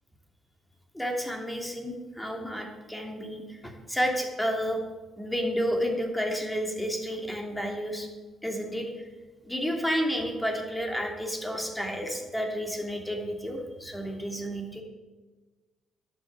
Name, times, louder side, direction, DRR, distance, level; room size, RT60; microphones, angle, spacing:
voice 1, 0.9-4.8 5.2-8.1 8.4-8.9 9.4-14.8, equal, 5° left, 2 dB, 2.9 m, -31 dB
11.0 x 8.5 x 7.4 m, 1.3 s
cardioid pair, 90°, 0 cm